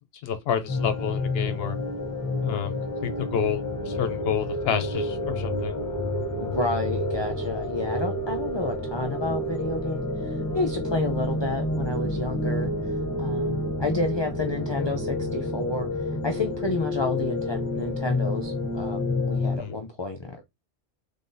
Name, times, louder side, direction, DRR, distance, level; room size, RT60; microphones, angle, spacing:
voice 1, 0.2-1.8 2.4-2.8 3.0-5.8 19.6-19.8, left 8 dB, 75° left, 0.8 m, -29 dB
sound 1, 0.7-19.6, left 1 dB, 20° left, 0.8 m, -29 dB
voice 2, 6.4-12.7 13.2-15.9 16.2-20.4, left 2 dB, 45° left, 0.4 m, -30 dB
3.8 x 3.6 x 2.6 m
omnidirectional pair, 1.1 m